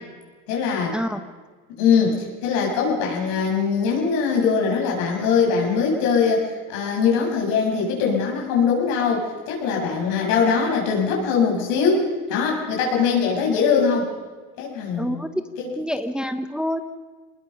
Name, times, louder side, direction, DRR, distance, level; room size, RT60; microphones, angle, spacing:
voice 1, 0.5-1.0 1.8-2.2 2.4-14.0 14.6-15.2 15.6-15.7, left 5 dB, 75° left, -1 dB, 7.3 m, -21 dB
voice 2, 15.0-15.3 15.8-16.8, equal, ahead, 8 dB, 1.1 m, -27 dB
25.0 x 20.0 x 5.9 m, 1.4 s
supercardioid pair, 95°, 41 cm